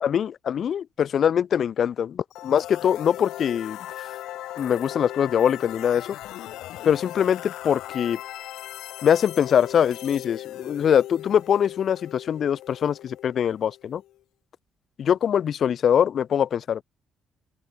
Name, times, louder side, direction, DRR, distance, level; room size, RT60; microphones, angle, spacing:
voice 1, 0.0-3.8 4.6-6.2 6.8-8.2 9.0-14.0 15.0-16.8, left 8 dB, 60° left, 0.3 m, -23 dB
sound 1, 2.3-14.1, left 14 dB, 85° left, 2.7 m, -38 dB
open air
cardioid pair, 90°, 0 cm